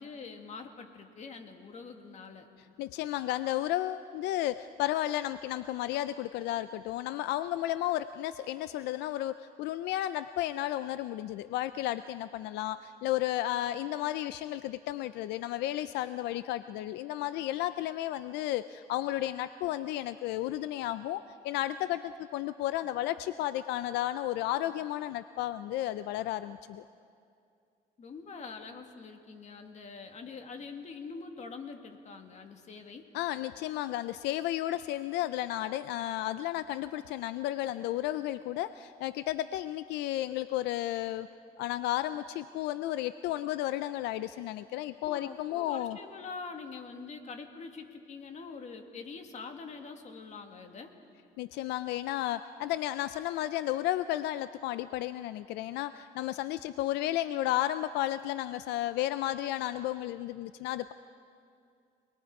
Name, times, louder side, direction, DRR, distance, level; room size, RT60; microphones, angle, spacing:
voice 1, 0.0-2.5 28.0-33.0 45.1-50.9, left 4 dB, 45° left, 5 dB, 1.9 m, -44 dB
voice 2, 2.8-26.8 33.1-41.3 41.6-46.0 51.4-60.9, left 14 dB, 85° left, 13 dB, 0.4 m, -33 dB
27.5 x 20.5 x 4.8 m, 2.4 s
cardioid pair, 110°, 17 cm